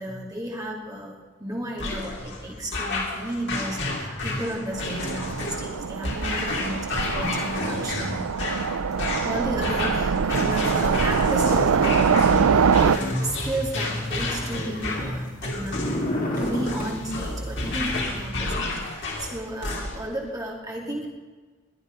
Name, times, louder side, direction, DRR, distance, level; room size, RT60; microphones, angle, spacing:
voice 1, 0.0-8.3 9.2-15.8 16.3-21.1, right 1 dB, 15° right, -2 dB, 2.6 m, -32 dB
sound 1, 1.8-20.2, left 2 dB, 55° left, 3.2 m, -31 dB
Train, 4.7-13.0, right 6 dB, 90° right, 0.5 m, -23 dB
sound 2, 11.1-11.8 12.1-13.1 13.7-15.3 15.6-16.9 17.5-18.0, left 1 dB, 40° left, 2.6 m, -31 dB
21.5 x 8.8 x 5.2 m, 1.4 s
head